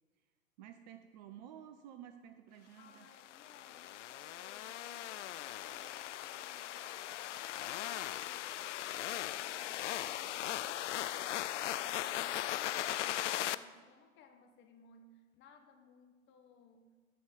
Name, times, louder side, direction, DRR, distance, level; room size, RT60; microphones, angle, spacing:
voice 1, 0.6-3.1, right 10 dB, 35° right, 8 dB, 0.5 m, -52 dB
voice 2, 2.8-8.4 9.1-16.9, left 5 dB, 25° left, 5 dB, 1.2 m, -60 dB
sound 1, 3.1-13.5, left 13 dB, 60° left, 0.5 m, -39 dB
11.5 x 4.4 x 7.5 m, 1.5 s
hypercardioid pair, 110°, 41 cm